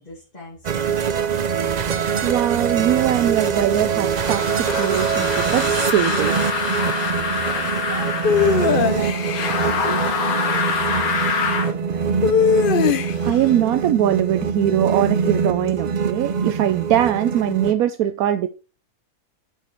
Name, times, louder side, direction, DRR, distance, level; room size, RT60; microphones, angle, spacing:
voice 1, 0.0-1.5 6.8-12.5, left 1 dB, 30° left, 2.5 m, -39 dB
sound 1, 0.6-17.7, right 6 dB, 55° right, 0.4 m, -24 dB
voice 2, 2.2-6.4 13.0-18.5, right 11 dB, 85° right, 1.1 m, -21 dB
sound 2, 4.1-8.8 9.3-11.7, left 5 dB, 85° left, 1.8 m, -25 dB
sound 3, 8.2-9.6 12.2-13.4, left 7 dB, 60° left, 0.6 m, -19 dB
8.8 x 4.7 x 4.4 m
omnidirectional pair, 1.5 m